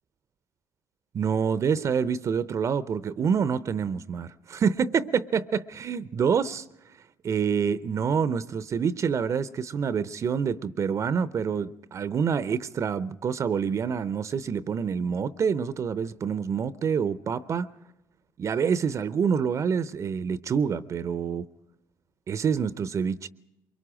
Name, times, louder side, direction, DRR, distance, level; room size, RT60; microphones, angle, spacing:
voice 1, 1.1-6.6 7.2-17.7 18.4-21.4 22.3-23.3, right 6 dB, 45° right, 0.6 m, -27 dB
23.0 x 22.5 x 5.0 m
hypercardioid pair, 60°, 7 cm